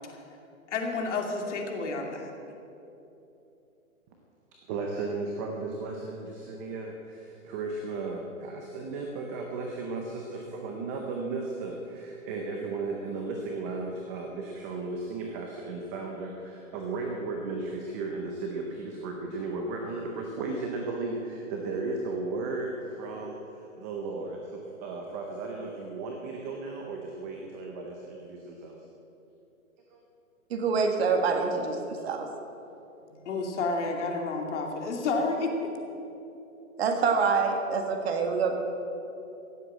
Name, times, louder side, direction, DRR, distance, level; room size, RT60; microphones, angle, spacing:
voice 1, 0.7-2.3 33.2-35.7, left 3 dB, 55° left, 2 dB, 2.6 m, -30 dB
voice 2, 4.7-28.8 29.9-30.0, right 3 dB, 10° right, 1 dB, 0.5 m, -35 dB
voice 3, 30.5-32.3 36.8-38.5, right 5 dB, 45° right, 4 dB, 1.9 m, -26 dB
16.0 x 8.0 x 8.7 m, 2.9 s
hypercardioid pair, 145°, 42 cm